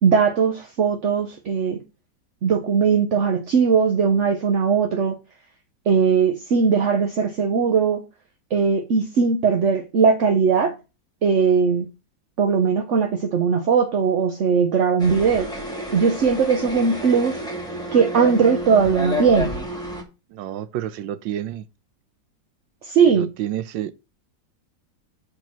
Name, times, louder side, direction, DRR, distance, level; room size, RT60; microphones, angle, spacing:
voice 1, 0.0-1.8 2.4-5.2 5.9-8.0 8.5-10.7 11.2-11.9 12.4-15.5 15.9-17.4 17.9-19.5 22.8-23.3, right 6 dB, 50° right, 0.9 m, -19 dB
sound 1, 15.0-20.0, equal, ahead, 1.7 m, -30 dB
voice 2, 20.3-21.7 23.1-24.0, right 11 dB, 80° right, 1.3 m, -29 dB
5.9 x 5.1 x 5.9 m
omnidirectional pair, 2.0 m